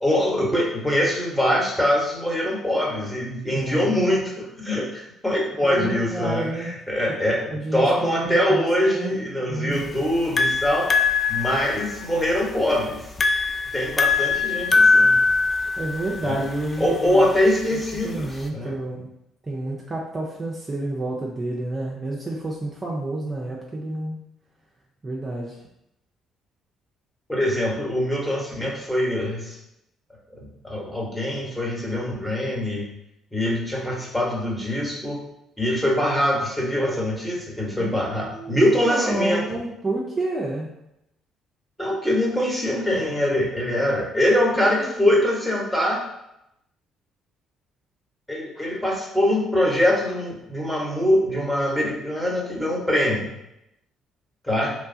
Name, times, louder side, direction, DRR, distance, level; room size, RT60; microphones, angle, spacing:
voice 1, 0.0-10.9 11.3-13.0 13.7-15.2 16.2-16.4 16.8-18.8 27.3-29.6 30.3-32.9 33.3-35.2 35.6-39.6 41.8-46.1 48.3-53.3 54.4-54.7, left 1 dB, 5° left, -4 dB, 1.1 m, -23 dB
voice 2, 3.5-3.9 5.6-6.7 7.5-9.2 9.5-10.0 15.8-17.3 18.0-19.1 19.4-24.2 25.0-25.6 37.8-40.7 44.6-45.1, right 2 dB, 30° right, -3 dB, 0.5 m, -29 dB
sound 1, 9.7-18.5, left 4 dB, 30° left, 0.3 m, -22 dB
3.0 x 2.2 x 2.7 m, 0.83 s
hypercardioid pair, 55°, 0 cm